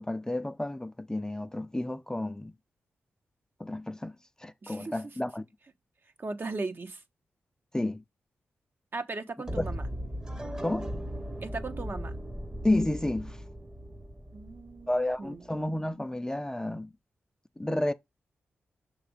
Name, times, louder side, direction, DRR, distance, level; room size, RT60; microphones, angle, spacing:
voice 1, 0.0-2.5 3.6-4.1 4.4-5.4 7.7-8.0 9.6-9.7 10.6-10.9 12.6-13.4 14.9-16.9 17.6-17.9, left 1 dB, 15° left, 0.5 m, -31 dB
voice 2, 4.6-4.9 6.2-7.0 8.9-9.8 11.4-12.2 14.3-15.6, right 3 dB, 45° right, 1.0 m, -37 dB
sound 1, 9.5-15.4, equal, 15° right, 1.0 m, -38 dB
6.1 x 3.3 x 5.0 m
supercardioid pair, 45°, 5 cm